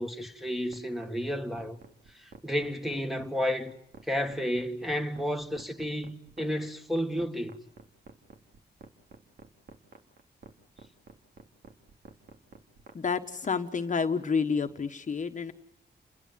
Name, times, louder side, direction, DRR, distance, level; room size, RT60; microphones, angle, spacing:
voice 1, 0.0-1.8 2.2-3.8 4.0-7.6, equal, ahead, 1.9 m, -32 dB
sound 1, 0.7-13.5, right 5 dB, 65° right, 2.7 m, -50 dB
voice 2, 12.9-15.5, left 5 dB, 45° left, 1.4 m, -29 dB
29.5 x 21.5 x 7.5 m
wide cardioid pair, 115°, 18 cm